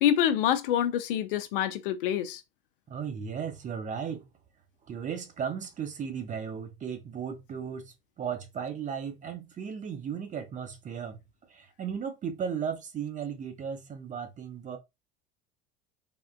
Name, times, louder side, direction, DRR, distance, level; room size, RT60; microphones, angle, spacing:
voice 1, 0.0-2.4, left 10 dB, 60° left, 0.5 m, -26 dB
voice 2, 2.9-4.2 4.9-11.2 11.5-14.8, right 7 dB, 25° right, 0.6 m, -36 dB
3.5 x 2.4 x 2.2 m
figure-of-eight pair, 70°, 31 cm